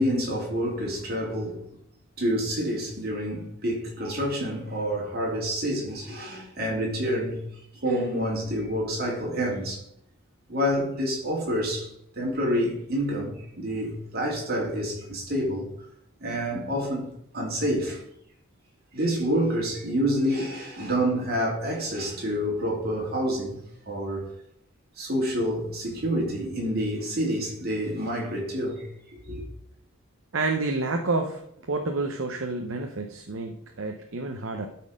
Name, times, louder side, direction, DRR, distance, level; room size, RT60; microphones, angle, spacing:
voice 1, 0.0-1.7 2.2-7.4 7.8-9.8 10.5-15.7 16.2-17.1 17.3-18.0 18.9-23.6 23.9-24.3 25.0-29.4, equal, 45° right, 2.8 m, -28 dB
voice 2, 30.3-31.4 31.7-34.7, right 3 dB, 65° right, 0.8 m, -29 dB
12.0 x 4.4 x 5.1 m
head